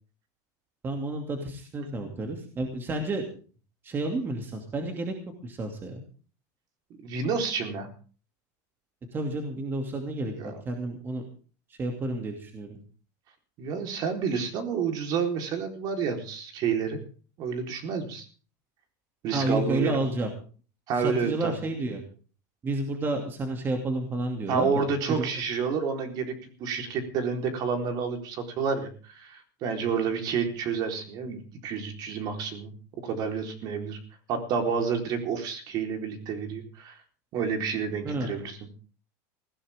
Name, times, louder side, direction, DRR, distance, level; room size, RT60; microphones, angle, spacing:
voice 1, 0.8-3.3 3.8-5.1 5.4-6.0 9.1-11.2 11.7-12.8 19.3-20.3 20.9-22.0 22.6-25.3 38.0-38.3, right 2 dB, 20° right, 4 dB, 2.6 m, -31 dB
voice 2, 1.8-2.1 7.0-7.9 10.4-10.5 13.6-17.0 17.4-18.3 19.2-19.9 20.9-21.5 24.5-26.3 26.6-32.7 33.0-34.0 34.3-37.0 37.3-38.6, right 6 dB, 45° right, 5 dB, 4.1 m, -29 dB
20.0 x 16.5 x 3.7 m, 0.40 s
supercardioid pair, 150°, 10 cm